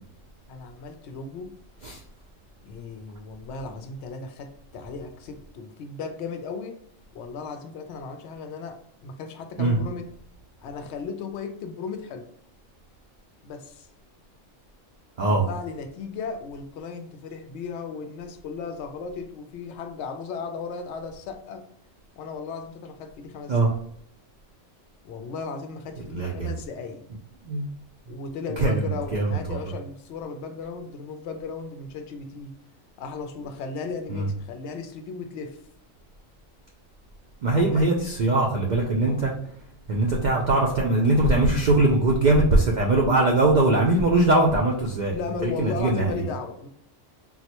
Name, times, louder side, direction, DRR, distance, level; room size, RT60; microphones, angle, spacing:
voice 1, 0.5-1.5 2.6-6.8 7.1-8.8 9.0-10.1 10.6-12.3 13.4-13.9 15.3-21.6 22.2-23.7 25.0-27.0 28.1-32.5 33.0-35.6 37.4-37.9 39.1-39.2 45.1-46.7, left 5 dB, 65° left, 6 dB, 0.8 m, -36 dB
voice 2, 26.1-26.5 27.4-27.6 28.6-29.6 34.1-34.3 37.4-39.3 39.9-45.2 45.4-46.2, right 2 dB, 70° right, -1 dB, 0.4 m, -21 dB
3.8 x 2.1 x 2.9 m, 0.68 s
omnidirectional pair, 1.3 m